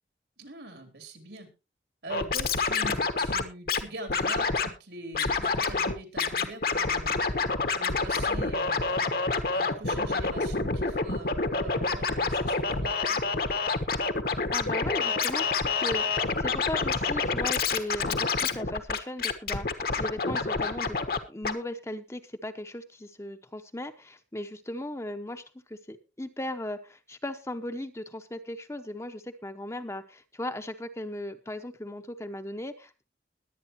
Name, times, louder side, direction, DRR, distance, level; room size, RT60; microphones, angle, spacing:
voice 1, 0.4-1.5 2.0-7.3 7.7-9.1 9.5-13.3, right 1 dB, 80° right, 6 dB, 3.5 m, -43 dB
Scratching (performance technique), 2.1-3.8 4.1-4.7 5.1-5.9 6.2-21.2 21.4-21.5, left 4 dB, 55° left, 1.3 m, -27 dB
voice 2, 14.5-15.5 15.8-21.0 21.3-25.4 25.7-33.0, left 1 dB, 15° left, 7 dB, 0.8 m, -37 dB
21.5 x 8.9 x 3.0 m, 0.29 s
head